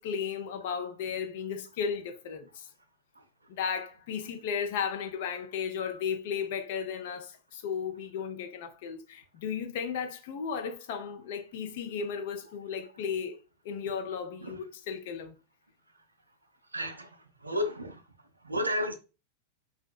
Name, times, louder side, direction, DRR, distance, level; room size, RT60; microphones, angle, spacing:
voice 1, 0.0-2.7 3.5-13.4 13.6-15.4, left 7 dB, 50° left, 0.5 m, -35 dB
voice 2, 16.7-18.0 18.4-18.9, equal, 80° right, 0.4 m, -32 dB
2.7 x 2.2 x 2.3 m
figure-of-eight pair, 90°, 0 cm